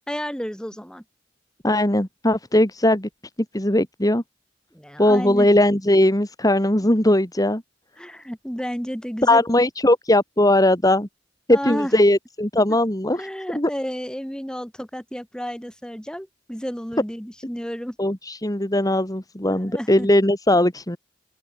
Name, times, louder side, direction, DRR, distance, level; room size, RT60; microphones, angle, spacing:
voice 1, 0.1-1.0 4.7-5.5 8.0-9.4 11.5-11.9 13.1-18.0 19.5-20.1, equal, 5° left, 4.1 m, -31 dB
voice 2, 1.6-3.1 3.5-4.2 5.0-7.6 9.2-11.1 11.5-13.3 13.5-13.7 18.0-21.0, left 1 dB, 20° left, 2.7 m, -19 dB
open air
head